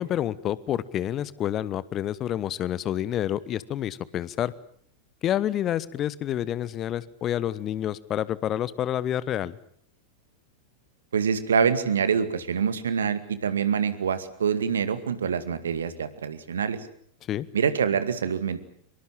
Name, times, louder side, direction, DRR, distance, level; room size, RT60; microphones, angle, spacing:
voice 1, 0.0-4.5 5.2-9.6 17.3-17.5, left 11 dB, 30° left, 19 dB, 1.0 m, -28 dB
voice 2, 11.1-16.9 17.5-18.6, right 7 dB, 65° right, 12 dB, 2.1 m, -25 dB
25.0 x 23.0 x 7.6 m, 0.63 s
figure-of-eight pair, 90°, 0 cm